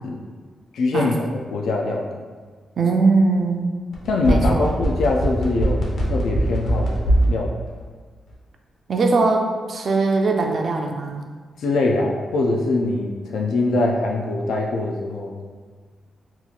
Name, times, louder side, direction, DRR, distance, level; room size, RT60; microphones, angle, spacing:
voice 1, 0.7-2.2 4.1-7.0 7.3-7.6 11.6-15.3, left 2 dB, 80° left, 0 dB, 0.4 m, -23 dB
voice 2, 2.8-3.7 4.3-4.7 8.9-11.2, right 3 dB, 45° right, 2 dB, 0.4 m, -20 dB
sound 1, 3.9-7.3 7.7-7.8, right 1 dB, 65° left, 0.8 m, -20 dB
2.9 x 2.4 x 3.8 m, 1.5 s
wide cardioid pair, 140°, 0 cm